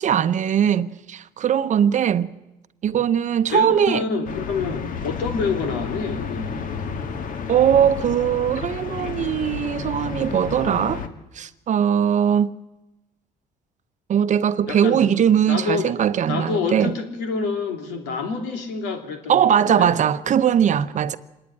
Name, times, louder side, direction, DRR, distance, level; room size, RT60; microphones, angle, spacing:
voice 1, 0.0-2.3 2.8-4.0 7.5-11.0 11.3-12.5 14.1-16.9 19.3-21.2, right 9 dB, 45° right, 0.8 m, -20 dB
voice 2, 3.5-6.6 14.7-15.1 15.4-15.9 16.3-19.9, left 4 dB, 85° left, 3.2 m, -27 dB
sound 1, 4.2-11.1, left 5 dB, 55° left, 1.7 m, -31 dB
25.5 x 10.5 x 9.9 m
cardioid pair, 110°, 17 cm